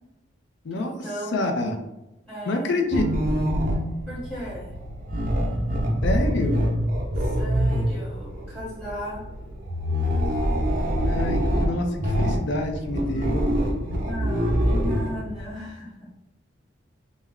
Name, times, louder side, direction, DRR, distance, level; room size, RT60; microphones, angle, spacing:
voice 1, 0.7-1.4 2.3-2.7 4.1-4.8 7.1-9.2 14.0-16.2, equal, 10° left, -12 dB, 1.0 m, -36 dB
voice 2, 1.3-1.8 2.5-3.0 6.0-6.7 11.0-13.6, left 2 dB, 65° left, 3 dB, 0.4 m, -27 dB
sound 1, 2.9-15.5, equal, 40° right, 0.5 m, -25 dB
2.3 x 2.1 x 3.5 m, 0.93 s
head